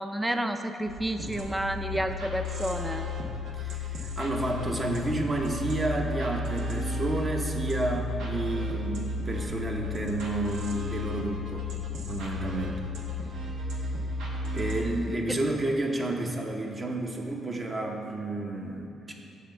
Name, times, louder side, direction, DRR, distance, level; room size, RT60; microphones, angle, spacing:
voice 1, 0.0-3.1 4.2-4.3, right 1 dB, 10° right, 7 dB, 0.4 m, -30 dB
sound 1, 0.9-14.8, left 2 dB, 90° right, 1.2 m, -33 dB
voice 2, 3.5-11.7 12.1-12.9 14.5-19.1, right 2 dB, 30° right, 1 dB, 0.9 m, -31 dB
6.8 x 4.2 x 6.6 m, 2.7 s
cardioid pair, 90°, 0 cm